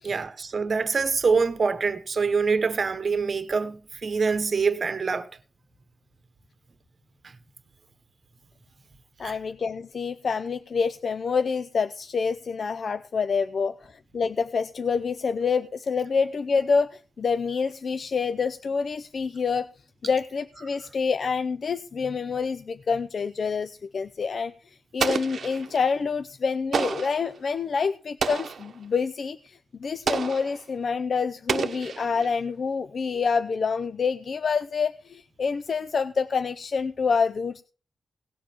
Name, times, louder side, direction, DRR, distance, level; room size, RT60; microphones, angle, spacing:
voice 1, 0.0-5.3 9.2-9.3, right 5 dB, 40° right, 1.0 m, -25 dB
voice 2, 9.2-19.7 20.0-37.6, left 5 dB, 55° left, 0.5 m, -27 dB
Explosion, 25.0-25.9 26.7-27.3 28.2-28.7 30.1-30.6 31.5-32.4, right 6 dB, 70° right, 0.8 m, -29 dB
18.0 x 7.2 x 4.4 m
wide cardioid pair, 155°, 0 cm